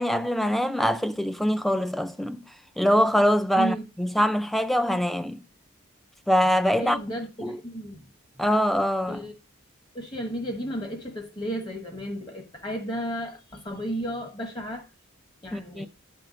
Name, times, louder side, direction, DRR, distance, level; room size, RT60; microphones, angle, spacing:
voice 1, 0.0-2.4 2.8-5.4 6.3-7.0 7.4-7.6 8.4-9.2 15.5-15.9, equal, ahead, 0.4 m, -23 dB
voice 2, 3.6-3.9 6.8-8.1 8.4-8.5 9.1-9.3 9.9-14.9 15.4-15.9, right 1 dB, 20° left, 1.2 m, -33 dB
11.5 x 4.4 x 5.3 m
head